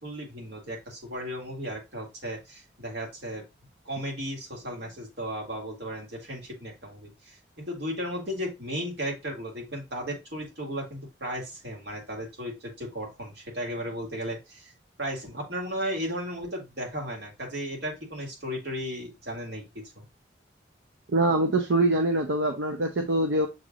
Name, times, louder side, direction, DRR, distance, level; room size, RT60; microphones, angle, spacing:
voice 1, 0.0-3.4 3.9-14.7 15.0-19.7 20.0-20.1, equal, 65° right, 2.0 m, -35 dB
voice 2, 21.1-23.5, right 2 dB, 80° right, 0.7 m, -24 dB
6.6 x 3.3 x 2.4 m
head